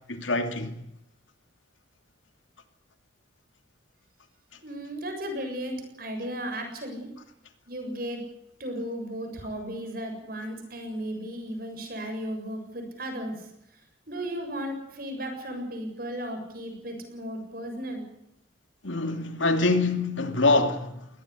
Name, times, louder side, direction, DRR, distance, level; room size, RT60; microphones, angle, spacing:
voice 1, 0.1-0.8 18.8-21.1, left 2 dB, 85° left, 2.8 m, -25 dB
voice 2, 4.6-7.1 7.7-8.2 8.6-13.5 14.1-18.1, equal, 50° right, 7.4 m, -35 dB
22.0 x 18.5 x 8.4 m
head